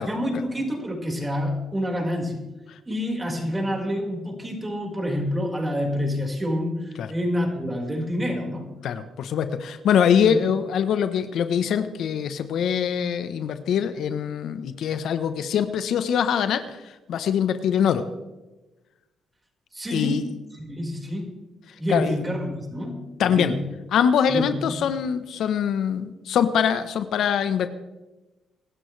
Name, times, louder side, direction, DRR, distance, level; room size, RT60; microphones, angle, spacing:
voice 1, 0.1-2.4 2.9-8.7 10.1-10.4 19.7-20.2 20.7-21.3 21.8-23.7 24.3-24.8, equal, 20° right, 0 dB, 5.0 m, -28 dB
voice 2, 8.8-16.8 17.1-18.0 19.9-20.2 21.9-22.1 23.2-23.6 23.9-27.7, left 8 dB, 75° left, 10 dB, 1.0 m, -23 dB
25.0 x 12.5 x 3.4 m, 1.1 s
cardioid pair, 90°, 0 cm